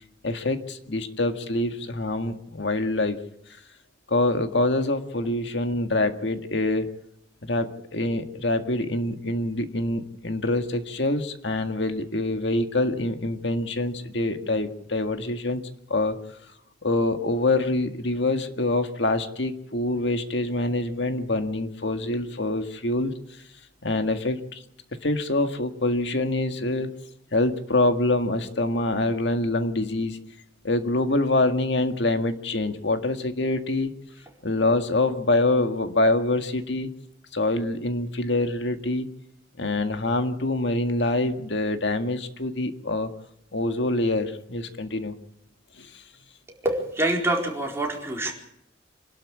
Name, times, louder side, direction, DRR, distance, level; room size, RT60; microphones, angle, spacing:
voice 1, 0.2-3.2 4.1-6.9 7.4-15.6 15.9-16.2 16.8-23.1 23.8-24.6 25.0-26.9 27.3-30.2 30.6-34.0 34.4-36.9 37.3-39.1 39.6-43.1 43.5-45.1 45.8-45.9, left 2 dB, 70° left, 6 dB, 1.9 m, -25 dB
voice 2, 46.6-48.3, right 1 dB, 15° right, -1 dB, 4.4 m, -25 dB
26.5 x 12.5 x 8.5 m, 0.77 s
head